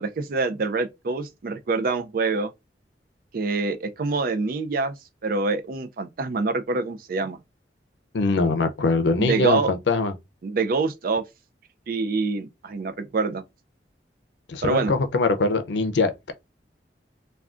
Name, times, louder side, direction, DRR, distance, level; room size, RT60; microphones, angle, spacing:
voice 1, 0.0-2.5 3.3-4.9 5.2-7.4 9.2-9.7 10.4-11.2 11.9-13.4 14.6-14.9, right 3 dB, 55° right, 0.4 m, -26 dB
voice 2, 8.1-10.1 14.5-16.3, left 3 dB, 80° left, 0.5 m, -22 dB
3.5 x 2.3 x 2.4 m
head